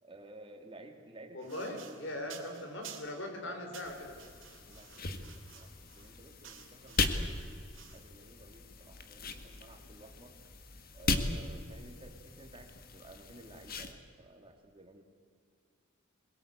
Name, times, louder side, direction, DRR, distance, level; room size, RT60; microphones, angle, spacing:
voice 1, 0.0-2.9 3.4-3.8 4.6-10.4 10.9-15.0, right 2 dB, 25° right, 4 dB, 2.5 m, -54 dB
voice 2, 1.3-4.2, left 1 dB, 60° left, 4 dB, 4.5 m, -40 dB
sound 1, 1.4-3.3 3.7-8.1, right 9 dB, 65° right, 2.8 m, -53 dB
sound 2, 3.8-13.9, left 3 dB, 45° left, 1.7 m, -38 dB
22.5 x 21.5 x 8.1 m, 2.2 s
head